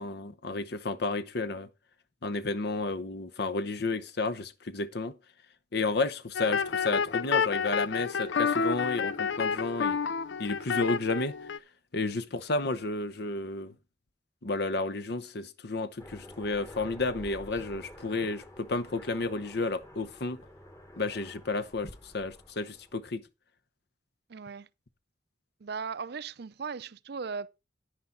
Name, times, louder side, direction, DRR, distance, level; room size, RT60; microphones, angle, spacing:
voice 1, 0.0-1.7 2.2-5.1 5.7-10.0 10.4-11.3 11.9-13.7 14.4-20.4 21.0-23.2, left 3 dB, 65° left, 0.9 m, -32 dB
sound 1, 6.3-11.6, left 6 dB, 85° left, 0.6 m, -29 dB
Aircraft, 16.0-23.1, equal, 15° left, 1.3 m, -49 dB
voice 2, 24.3-24.7 25.6-27.5, right 5 dB, 60° right, 0.5 m, -37 dB
10.0 x 9.9 x 3.9 m
head